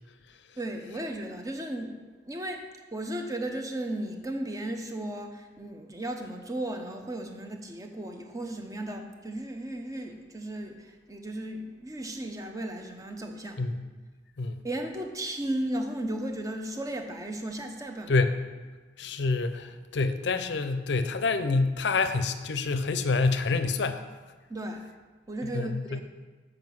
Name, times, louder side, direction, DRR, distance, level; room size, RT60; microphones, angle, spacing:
voice 1, 0.6-2.0 2.2-2.6 2.9-13.6 14.6-18.1 24.5-24.9 25.3-26.0, right 1 dB, 20° right, 4 dB, 0.7 m, -35 dB
voice 2, 18.1-18.4 19.0-24.0 25.4-26.0, left 3 dB, 70° left, 10 dB, 0.5 m, -27 dB
7.5 x 4.9 x 6.2 m, 1.3 s
head